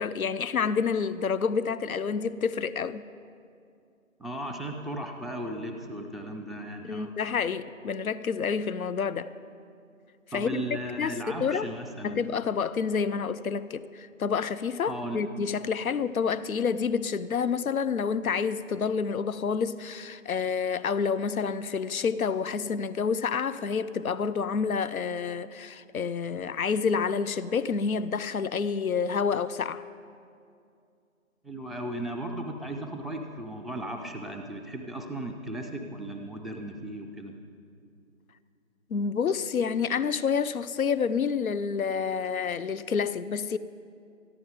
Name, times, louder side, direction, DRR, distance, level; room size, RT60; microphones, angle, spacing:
voice 1, 0.0-3.0 6.9-9.3 10.3-10.6 11.0-11.8 12.0-29.8 38.9-43.6, left 6 dB, 85° left, 0.6 m, -28 dB
voice 2, 4.2-7.1 10.3-12.3 14.9-15.2 31.4-37.4, right 1 dB, ahead, 0.5 m, -36 dB
14.0 x 11.0 x 5.0 m
figure-of-eight pair, 170°, 41 cm